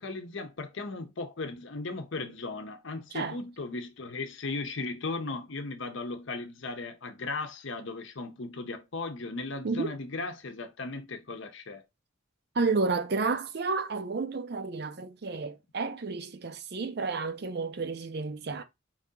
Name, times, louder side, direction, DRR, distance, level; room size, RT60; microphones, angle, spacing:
voice 1, 0.0-11.8, left 3 dB, 60° left, 0.7 m, -37 dB
voice 2, 12.5-18.6, right 4 dB, 50° right, 0.5 m, -31 dB
4.6 x 2.8 x 3.7 m
head